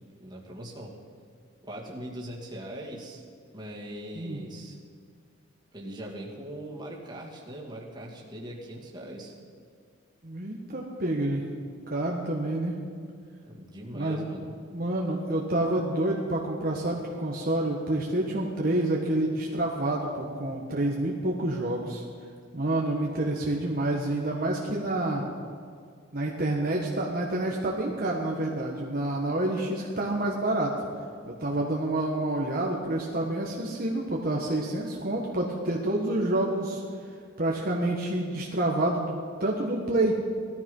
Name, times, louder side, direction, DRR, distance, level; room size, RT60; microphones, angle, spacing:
voice 1, 0.2-0.9 1.6-3.2 3.5-4.8 5.7-9.3 13.5-14.6, right 1 dB, 20° right, -3 dB, 2.5 m, -40 dB
voice 2, 10.2-11.4 11.9-12.8 13.9-14.3 14.7-22.0 22.5-25.2 26.1-30.7 31.2-36.8 37.4-40.1, right 1 dB, 45° right, -2 dB, 1.5 m, -28 dB
18.0 x 13.5 x 5.5 m, 2.2 s
head